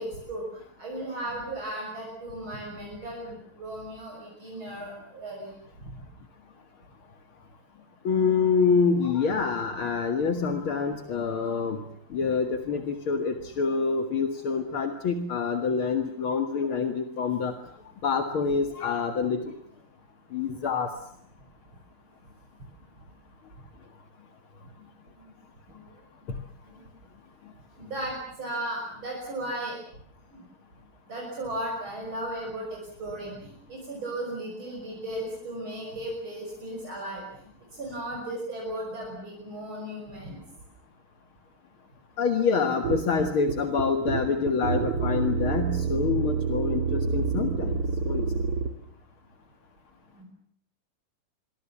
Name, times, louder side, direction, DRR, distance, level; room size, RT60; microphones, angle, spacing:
voice 1, 0.0-5.5 27.8-29.8 30.3-30.4 31.1-37.2 37.8-40.4 46.1-46.2 50.2-50.3, right 1 dB, 65° right, -1 dB, 7.2 m, -36 dB
voice 2, 8.0-11.8 12.1-17.5 18.0-19.5 20.3-20.9 42.2-48.2, left 5 dB, 70° left, 7 dB, 2.7 m, -26 dB
sound 1, 42.8-48.7, right 5 dB, 85° right, 3.1 m, -28 dB
26.5 x 23.5 x 7.2 m, 0.66 s
omnidirectional pair, 2.4 m